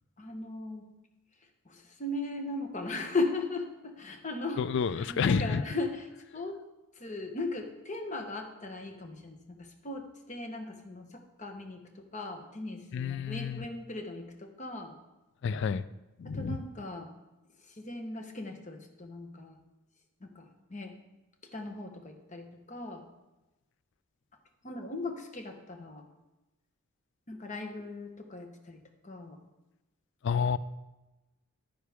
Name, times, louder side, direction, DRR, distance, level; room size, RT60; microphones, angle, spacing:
voice 1, 0.2-0.9 1.6-4.6 4.9-6.6 6.9-14.9 16.2-17.1 17.7-19.6 20.2-20.9 21.5-23.0 24.6-26.0 27.3-28.8 29.0-29.4, left 2 dB, 35° left, 4 dB, 1.0 m, -38 dB
voice 2, 4.6-5.6 12.9-13.6 15.4-15.8 16.2-16.6 30.2-30.6, left 6 dB, 55° left, 16 dB, 0.3 m, -29 dB
10.5 x 9.5 x 3.5 m, 1.0 s
head